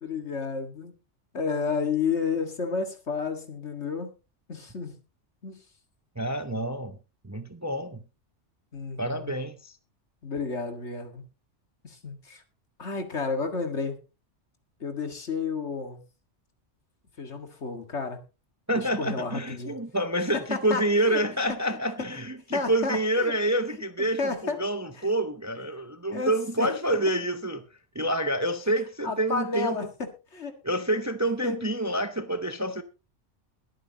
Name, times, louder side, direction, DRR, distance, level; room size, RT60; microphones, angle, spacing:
voice 1, 0.0-0.9 1.3-4.1 4.5-5.0 5.4-5.6 8.7-9.4 10.2-11.2 11.8-12.4 12.8-14.0 14.8-16.0 17.2-18.2 18.7-19.7 20.5-20.8 21.1-21.2 22.5-23.3 24.0-24.6 25.0-25.1 26.1-26.3 26.6-26.7 29.0-30.5 31.4-31.6, left 4 dB, 65° left, 2.2 m, -31 dB
voice 2, 6.2-7.0 7.2-8.0 9.0-9.7 18.7-27.6 27.9-29.8 30.6-32.8, right 1 dB, 15° right, 0.7 m, -28 dB
21.5 x 9.0 x 2.9 m
omnidirectional pair, 1.3 m